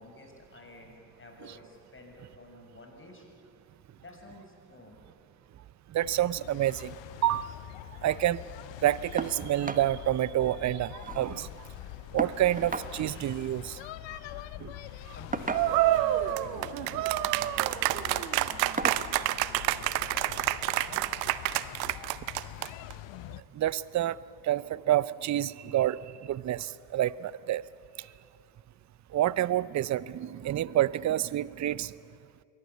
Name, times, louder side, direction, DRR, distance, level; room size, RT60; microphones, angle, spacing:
voice 1, 0.0-3.3 4.0-5.0 15.1-21.0, left 1 dB, 25° left, 2 dB, 6.3 m, -50 dB
voice 2, 5.9-6.9 7.2-7.5 8.0-8.4 8.8-11.5 12.1-13.8 14.1-14.2 14.6-14.7 15.1-15.2 21.8-21.9 23.5-24.2 24.4-27.7 28.0-28.1 29.1-32.0, right 13 dB, 35° right, 20 dB, 0.6 m, -28 dB
sound 1, 6.0-23.4, left 14 dB, 65° left, 0.9 m, -45 dB
sound 2, 9.2-9.4 9.7-9.9 10.3-10.4 10.6-11.3 12.2-12.9 14.2-14.4 15.3-16.0 17.0-17.3 17.8-18.0 18.8-19.1 20.4-20.5 21.0-21.1, right 3 dB, 15° right, 1.4 m, -35 dB
sound 3, 15.5-22.9, right 16 dB, 85° right, 0.8 m, -28 dB
23.5 x 18.0 x 8.3 m, 2.4 s
hypercardioid pair, 55°, 49 cm